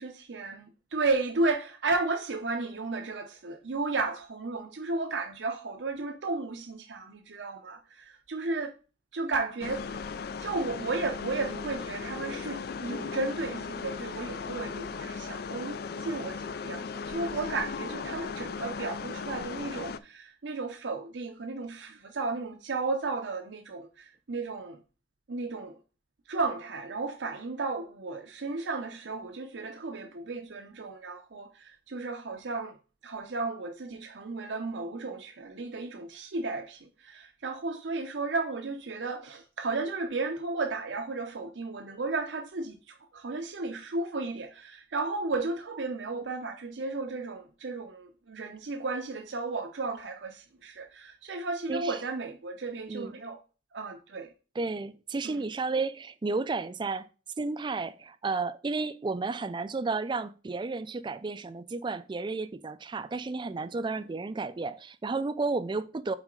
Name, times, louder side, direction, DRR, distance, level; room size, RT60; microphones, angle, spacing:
voice 1, 0.0-8.7 9.1-10.1 10.4-24.8 25.3-25.8 26.3-32.8 33.0-53.4 53.7-54.3 55.2-55.4, right 3 dB, 80° right, 0.7 m, -34 dB
sound 1, 9.6-20.0, left 5 dB, 60° left, 0.4 m, -37 dB
voice 2, 54.6-57.1 57.4-66.2, right 3 dB, 25° right, 0.3 m, -32 dB
6.2 x 4.2 x 3.7 m
head